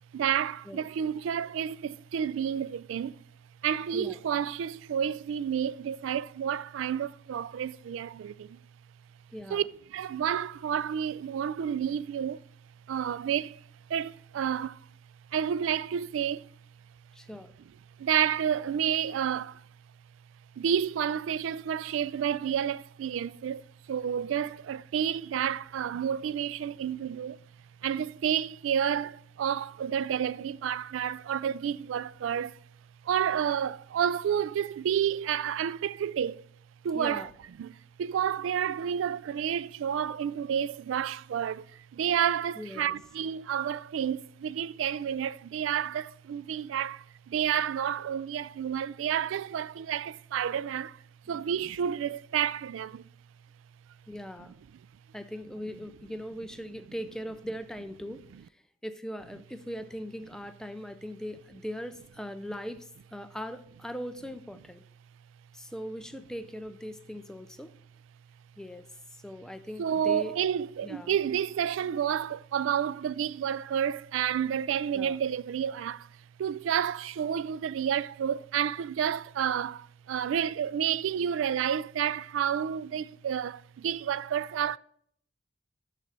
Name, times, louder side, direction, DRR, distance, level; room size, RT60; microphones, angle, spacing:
voice 1, 0.1-3.2 3.6-8.6 9.5-9.6 9.9-12.4 12.9-13.6 13.9-14.8 15.3-16.5 18.0-19.6 20.6-27.4 27.8-32.6 33.0-36.4 36.8-37.3 37.6-37.7 38.0-41.7 41.9-51.0 51.3-53.0 69.8-76.1 76.4-84.8, right 8 dB, 85° right, 0.3 m, -30 dB
voice 2, 9.3-9.6 17.1-17.5 36.9-37.3 42.6-43.0 51.3-51.5 54.1-54.5 55.1-58.2 58.5-64.9 65.5-67.7 68.6-68.8 69.1-70.3 70.8-71.2 74.9-75.2, equal, 5° left, 0.5 m, -40 dB
6.7 x 6.3 x 7.3 m
head